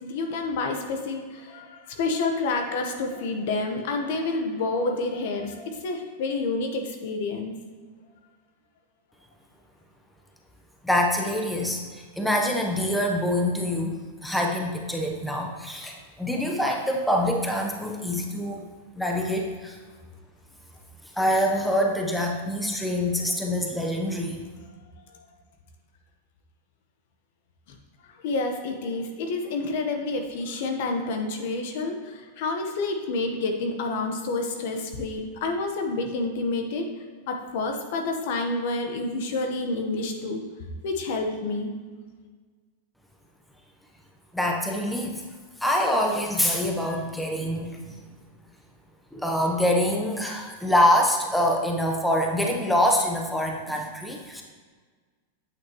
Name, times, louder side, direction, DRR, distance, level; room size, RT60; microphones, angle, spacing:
voice 1, 0.0-7.6 28.2-36.8 37.3-40.4 40.8-41.7, left 3 dB, 65° left, 4 dB, 1.2 m, -29 dB
voice 2, 10.8-18.6 19.0-19.8 21.1-24.4 44.3-45.2 45.6-47.9 49.1-54.4, left 1 dB, 5° left, 1 dB, 0.9 m, -25 dB
8.3 x 5.9 x 3.1 m, 1.5 s
hypercardioid pair, 115°, 0 cm